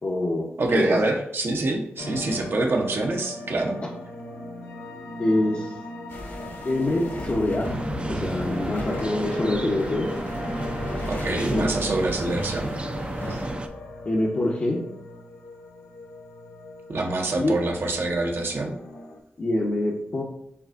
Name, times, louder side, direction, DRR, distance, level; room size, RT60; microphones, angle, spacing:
voice 1, 0.0-1.0 5.2-5.7 6.6-7.8 8.1-10.1 11.5-11.7 14.0-14.8 17.3-17.5 19.4-20.2, left 1 dB, 50° left, -4 dB, 0.8 m, -25 dB
voice 2, 0.6-3.8 11.1-12.8 13.3-13.5 16.9-18.8, right 2 dB, 60° right, 2 dB, 0.8 m, -26 dB
sound 1, 2.0-19.2, left 1 dB, 90° left, 0.5 m, -37 dB
sound 2, 6.1-13.5, equal, 70° left, 1.4 m, -38 dB
sound 3, 7.6-13.7, right 2 dB, 25° right, 0.4 m, -32 dB
6.8 x 2.4 x 2.5 m, 0.74 s
cardioid pair, 45°, 4 cm